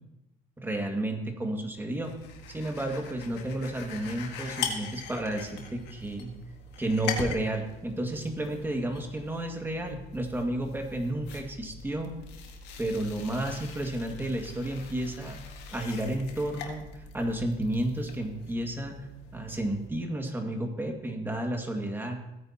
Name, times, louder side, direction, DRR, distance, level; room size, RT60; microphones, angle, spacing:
voice 1, 0.6-2.1 2.5-6.3 6.8-12.1 12.8-15.4 15.7-19.1 19.3-22.2, right 1 dB, 10° right, 2 dB, 2.0 m, -32 dB
sound 1, 2.0-19.9, left 5 dB, 90° left, 1.8 m, -42 dB
17.0 x 9.1 x 2.9 m, 0.93 s
cardioid pair, 110°, 17 cm